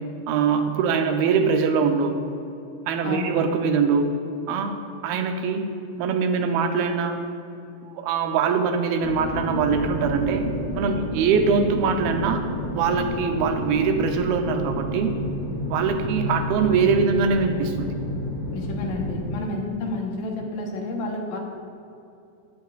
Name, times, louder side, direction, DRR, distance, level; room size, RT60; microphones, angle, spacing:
voice 1, 0.3-2.2 2.9-4.1 4.5-4.7 5.0-5.7 6.0-7.2 7.8-10.5 10.7-12.5 12.7-15.1 15.7-17.9, right 5 dB, 85° right, 5 dB, 2.6 m, -22 dB
voice 2, 3.0-3.3 18.5-21.4, left 2 dB, 75° left, 1 dB, 2.7 m, -30 dB
sound 1, 9.0-19.3, equal, 90° left, 4.6 m, -30 dB
15.0 x 10.0 x 2.4 m, 2.6 s
omnidirectional pair, 4.3 m